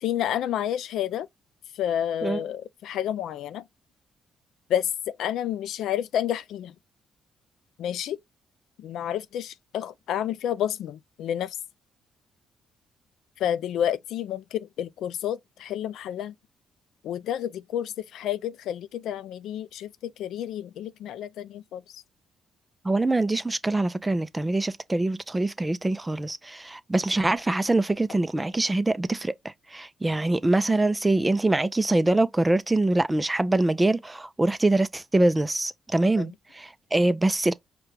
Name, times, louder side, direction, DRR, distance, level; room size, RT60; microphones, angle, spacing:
voice 1, 0.0-1.3 1.7-3.6 4.7-6.7 7.8-8.2 8.8-11.6 13.4-16.3 17.0-22.0 36.2-36.3, left 10 dB, 80° left, 0.3 m, -30 dB
voice 2, 22.8-37.5, right 2 dB, 15° right, 0.4 m, -24 dB
4.9 x 2.2 x 3.1 m
cardioid pair, 90°, 0 cm